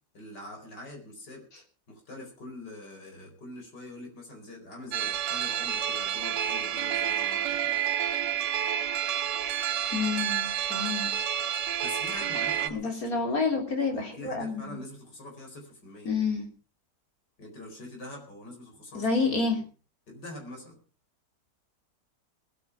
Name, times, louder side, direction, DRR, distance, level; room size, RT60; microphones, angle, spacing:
voice 1, 0.1-1.5 1.9-7.7 11.8-13.4 13.9-16.1 17.4-19.1 19.5-19.6 20.1-20.8, left 1 dB, 80° left, 2 dB, 5.1 m, -44 dB
sound 1, 4.9-12.7, right 9 dB, 85° right, 1.6 m, -29 dB
voice 2, 9.9-11.1 12.7-14.8 16.1-16.5 18.9-19.6, left 4 dB, 55° left, 2 dB, 3.9 m, -28 dB
20.0 x 9.3 x 5.8 m, 0.37 s
omnidirectional pair, 1.8 m